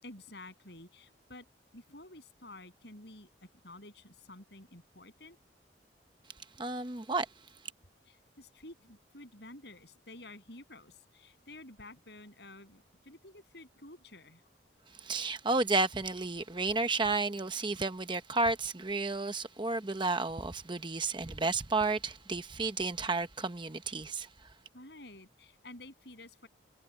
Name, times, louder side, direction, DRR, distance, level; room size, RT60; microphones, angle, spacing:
voice 1, 0.0-1.5 1.7-5.4 8.0-14.4 24.7-26.5, left 2 dB, 65° left, 7.9 m, -51 dB
voice 2, 6.6-7.3 15.0-24.3, right 3 dB, 25° right, 0.9 m, -32 dB
head